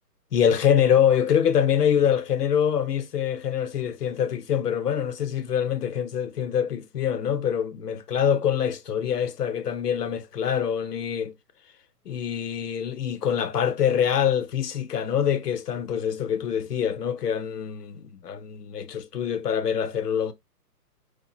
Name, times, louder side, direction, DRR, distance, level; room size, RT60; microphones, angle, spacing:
voice 1, 0.3-11.3 12.1-20.3, left 8 dB, 75° left, 0.8 m, -25 dB
4.5 x 2.4 x 2.6 m
hypercardioid pair, 145°, 48 cm